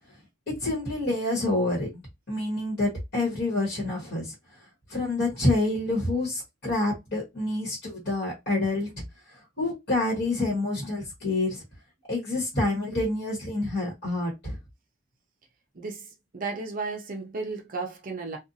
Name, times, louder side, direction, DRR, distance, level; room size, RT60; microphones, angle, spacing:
voice 1, 0.5-4.3 4.9-9.0 9.6-11.6 12.1-14.6, left 2 dB, 50° left, 1.2 m, -27 dB
voice 2, 15.7-18.4, right 3 dB, 40° right, 0.5 m, -34 dB
2.6 x 2.3 x 2.6 m
head